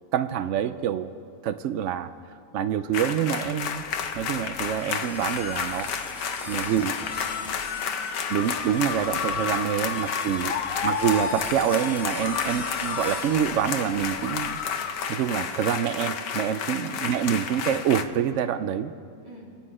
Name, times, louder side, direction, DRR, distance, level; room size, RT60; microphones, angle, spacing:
voice 1, 0.1-1.1 1.4-2.1 2.5-3.8 4.2-5.9 6.5-6.9 8.3-10.5 10.8-14.6 15.1-18.9, right 9 dB, 85° right, 11 dB, 0.6 m, -26 dB
sound 1, 2.9-18.0, left 7 dB, 85° left, 1.5 m, -30 dB
sound 2, 3.4-14.7, left 2 dB, 20° left, 2.1 m, -51 dB
sound 3, 4.7-13.5, equal, ahead, 1.3 m, -44 dB
voice 2, 6.1-8.2 12.2-12.4 19.2-19.5, left 1 dB, 15° right, -5 dB, 3.5 m, -48 dB
26.5 x 9.8 x 4.8 m, 2.4 s
omnidirectional pair, 1.8 m